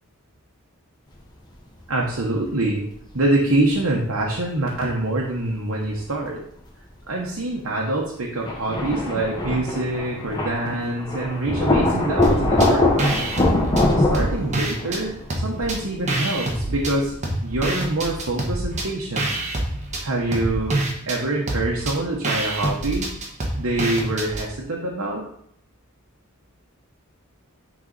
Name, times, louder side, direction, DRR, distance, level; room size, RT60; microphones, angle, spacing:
voice 1, 1.9-2.8 3.1-6.5 7.1-13.4 14.0-17.2 17.4-19.4 20.0-23.1 23.6-25.2, right 2 dB, 65° right, -2 dB, 1.1 m, -25 dB
sound 1, 2.1-2.2 2.9-3.8 4.1-5.1 5.5-5.6 8.4-17.2, left 2 dB, 20° left, 1.2 m, -23 dB
sound 2, 12.2-12.7 13.0-15.0 15.3-16.9 17.2-24.5, right 1 dB, 35° right, 1.2 m, -27 dB
9.3 x 4.0 x 4.1 m, 0.68 s
head